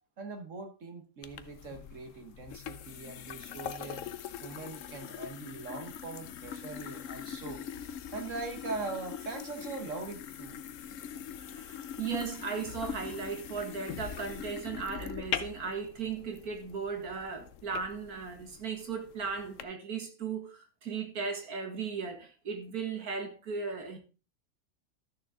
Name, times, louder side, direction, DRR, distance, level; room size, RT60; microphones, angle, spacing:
voice 1, 0.2-4.0 4.4-7.6 8.1-10.6, right 3 dB, 60° right, 1.6 m, -41 dB
sound 1, 1.2-19.6, left 9 dB, 65° left, 1.0 m, -42 dB
voice 2, 11.4-24.0, right 5 dB, 85° right, 2.3 m, -37 dB
13.0 x 6.7 x 3.6 m
omnidirectional pair, 1.5 m